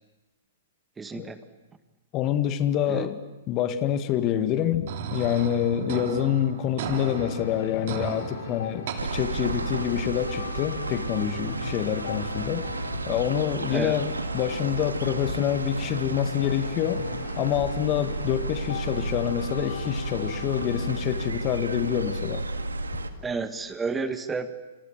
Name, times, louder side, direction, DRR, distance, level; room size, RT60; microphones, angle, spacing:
voice 1, 1.0-1.4 2.9-3.1 13.7-14.0 23.2-24.5, right 4 dB, 15° right, 11 dB, 1.8 m, -31 dB
voice 2, 2.1-3.2 3.5-12.7 13.1-17.0 17.4-22.4, left 10 dB, 35° left, 11 dB, 1.8 m, -27 dB
sound 1, 4.9-9.9, right 7 dB, 55° right, 3.2 m, -35 dB
sound 2, 6.9-21.0, left 7 dB, 65° left, 2.7 m, -39 dB
sound 3, 9.0-23.1, right 3 dB, 80° right, 2.1 m, -32 dB
28.0 x 27.5 x 7.4 m, 1.1 s
figure-of-eight pair, 110°, 0 cm